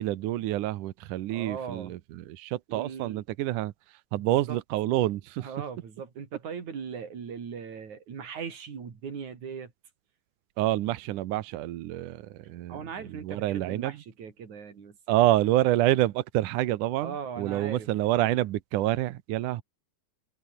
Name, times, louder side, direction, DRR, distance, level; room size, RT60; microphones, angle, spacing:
voice 1, 0.0-3.7 4.1-5.5 10.6-12.8 13.2-14.0 15.1-19.6, right 15 dB, 75° right, 1.8 m, -27 dB
voice 2, 1.3-1.9 2.7-3.2 4.1-4.6 5.4-9.7 12.7-15.0 17.0-17.9, right 6 dB, 45° right, 4.5 m, -39 dB
omnidirectional pair, 5.0 m